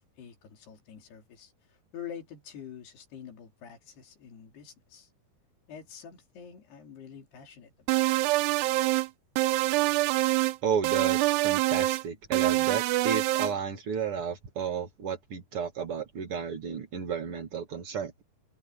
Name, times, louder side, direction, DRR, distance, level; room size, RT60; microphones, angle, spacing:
voice 1, 0.0-1.5 1.9-5.1 5.7-8.0, left 8 dB, 75° left, 5.4 m, -46 dB
sound 1, 7.9-9.1 9.4-10.6 10.8-12.0 12.3-13.5, right 17 dB, 85° right, 2.9 m, -25 dB
voice 2, 10.6-18.2, right 7 dB, 45° right, 1.9 m, -32 dB
omnidirectional pair, 4.8 m